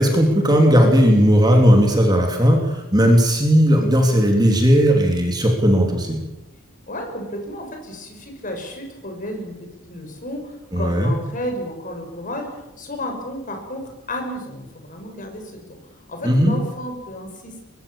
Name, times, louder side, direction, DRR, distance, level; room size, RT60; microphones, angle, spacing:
voice 1, 0.0-6.2 10.7-11.1 16.2-16.5, equal, 20° right, 2 dB, 3.3 m, -16 dB
voice 2, 6.9-15.5 15.8-17.6, left 1 dB, 35° left, 3 dB, 6.3 m, -32 dB
24.5 x 23.0 x 7.3 m, 0.96 s
head